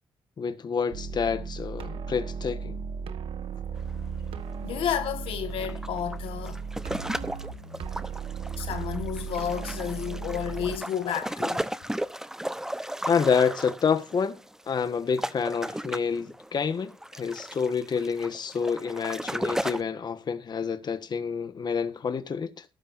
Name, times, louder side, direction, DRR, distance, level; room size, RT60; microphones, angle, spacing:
voice 1, 0.4-2.8 13.1-14.4 14.7-22.6, left 6 dB, 50° left, 1.4 m, -28 dB
sound 1, 0.9-10.8, right 5 dB, 80° right, 1.4 m, -36 dB
sound 2, 3.8-4.0 4.2-4.4 5.3-19.8, right 1 dB, 5° right, 0.8 m, -35 dB
voice 2, 4.6-6.6 8.6-11.7, left 9 dB, 85° left, 1.6 m, -31 dB
14.0 x 11.5 x 2.6 m
cardioid pair, 70°, 9 cm